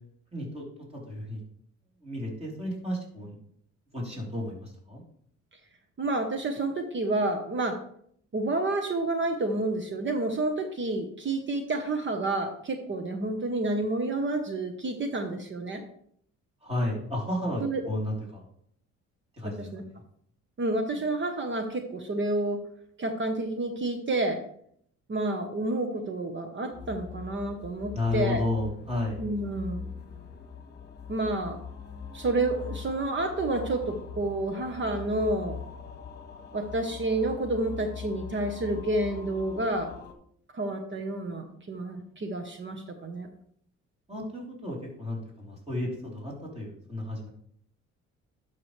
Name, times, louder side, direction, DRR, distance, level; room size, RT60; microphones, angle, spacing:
voice 1, 0.3-0.7 0.9-1.4 2.0-3.4 3.9-5.0 16.6-18.5 19.4-19.9 27.9-29.2 44.1-47.3, left 1 dB, 20° right, -2 dB, 3.5 m, -32 dB
voice 2, 6.0-7.8 8.3-15.8 17.6-17.8 19.4-19.8 20.6-22.6 23.0-24.4 25.1-28.4 29.2-29.9 31.1-31.6 32.1-35.6 36.5-39.9 40.5-43.3, right 2 dB, 40° right, 6 dB, 1.0 m, -29 dB
sound 1, 26.7-40.1, left 6 dB, 35° left, 1.3 m, -42 dB
11.5 x 5.8 x 3.2 m, 0.66 s
cardioid pair, 90°, 30 cm